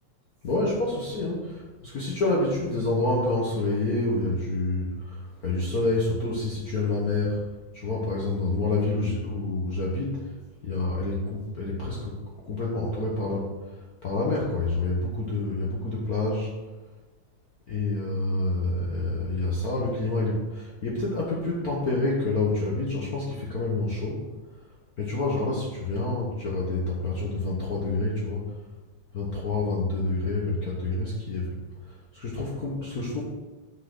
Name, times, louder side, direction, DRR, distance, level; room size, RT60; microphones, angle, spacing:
voice 1, 0.4-7.4 7.7-10.2 10.6-12.2 12.4-13.5 14.0-16.5 17.7-24.2 25.0-28.5 29.1-31.5 32.1-33.2, left 2 dB, 55° left, -4 dB, 1.0 m, -28 dB
6.3 x 5.7 x 5.9 m, 1.2 s
omnidirectional pair, 3.3 m